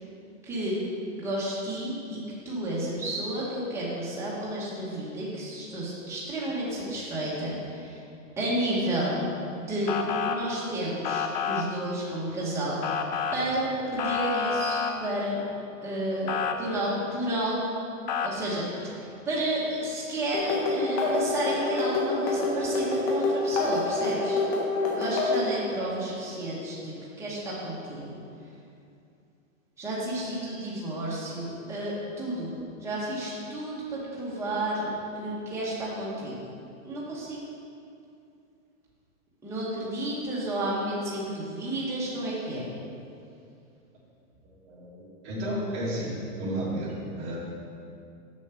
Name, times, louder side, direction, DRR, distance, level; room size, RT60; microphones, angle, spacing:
voice 1, 0.4-0.8 1.2-2.2 2.4-8.0 8.4-9.2 9.5-15.4 15.8-17.8 18.2-24.4 24.9-28.2 29.8-36.4 36.8-37.4 39.4-42.7, right 1 dB, 5° right, -7 dB, 1.3 m, -31 dB
Motor vehicle (road) / Siren, 9.9-10.4 11.0-11.6 12.8-13.4 14.0-14.9 16.3-16.5 18.1-18.3, left 6 dB, 35° left, 0.4 m, -28 dB
sound 1, 20.3-25.5, left 3 dB, 55° left, 1.8 m, -27 dB
voice 2, 44.6-47.4, right 1 dB, 25° right, -7 dB, 2.3 m, -32 dB
7.4 x 6.2 x 5.8 m, 2.5 s
supercardioid pair, 160°, 41 cm